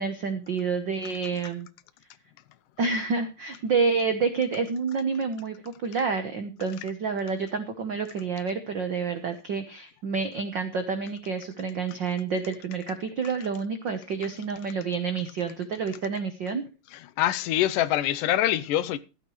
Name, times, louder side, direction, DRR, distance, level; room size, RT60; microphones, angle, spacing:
voice 1, 0.0-1.7 2.8-16.6, right 5 dB, 80° right, 1.0 m, -29 dB
voice 2, 16.9-19.0, left 13 dB, 80° left, 2.3 m, -25 dB
14.5 x 12.0 x 3.2 m
omnidirectional pair, 3.8 m